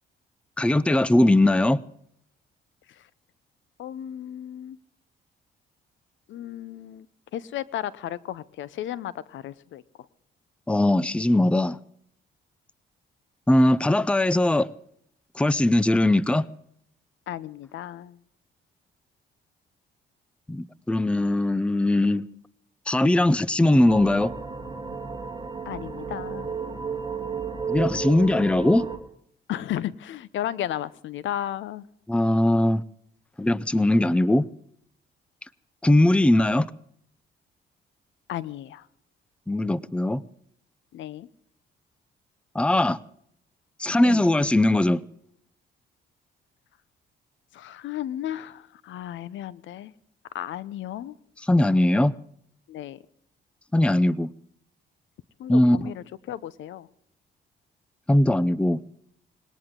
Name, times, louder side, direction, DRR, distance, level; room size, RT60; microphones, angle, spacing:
voice 1, 0.6-1.8 10.7-11.8 13.5-14.7 15.4-16.5 20.5-22.2 22.9-24.3 27.7-28.9 32.1-32.8 33.4-34.5 35.8-36.7 39.5-40.2 42.5-43.0 43.8-45.0 51.5-52.1 53.7-54.3 55.5-55.9 58.1-58.8, left 1 dB, 5° left, 19 dB, 0.6 m, -20 dB
voice 2, 3.8-4.8 6.3-7.1 7.3-9.8 17.3-18.2 25.7-26.6 29.5-31.8 38.3-38.8 40.9-41.3 44.0-44.2 47.5-49.9 50.3-51.1 52.7-53.0 55.4-56.9, left 12 dB, 75° left, 19 dB, 0.7 m, -34 dB
sound 1, 23.9-29.0, right 5 dB, 25° right, 2.3 m, -33 dB
20.0 x 18.0 x 3.8 m, 0.68 s
cardioid pair, 90°, 20 cm